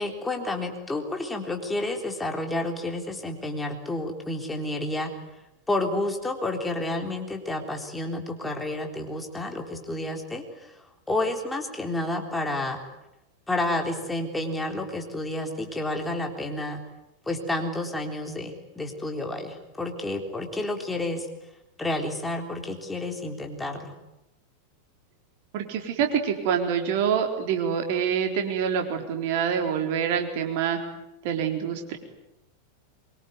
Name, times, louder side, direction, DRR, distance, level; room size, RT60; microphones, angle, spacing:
voice 1, 0.0-5.1 5.7-10.7 11.1-12.8 13.5-16.8 17.3-21.3 21.8-24.0, left 2 dB, 10° left, 3 dB, 3.7 m, -30 dB
voice 2, 25.5-30.8 31.2-32.0, right 7 dB, 50° right, 4 dB, 4.0 m, -26 dB
24.0 x 23.5 x 9.5 m, 0.91 s
figure-of-eight pair, 90°, 0 cm